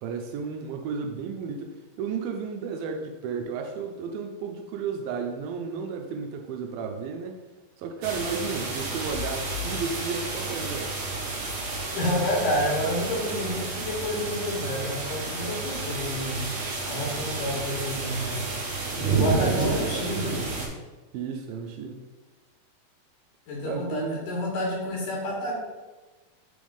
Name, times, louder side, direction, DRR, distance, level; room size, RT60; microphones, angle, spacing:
voice 1, 0.0-7.4 7.8-11.0 19.2-20.0 21.1-22.0 23.6-24.2, right 5 dB, 80° right, 3 dB, 2.2 m, -33 dB
sound 1, 8.0-20.7, right 3 dB, 65° right, 1.3 m, -30 dB
voice 2, 11.9-18.4 19.2-20.3 23.5-25.5, left 1 dB, 65° left, -4 dB, 2.8 m, -29 dB
6.1 x 3.5 x 5.1 m, 1.2 s
omnidirectional pair, 4.4 m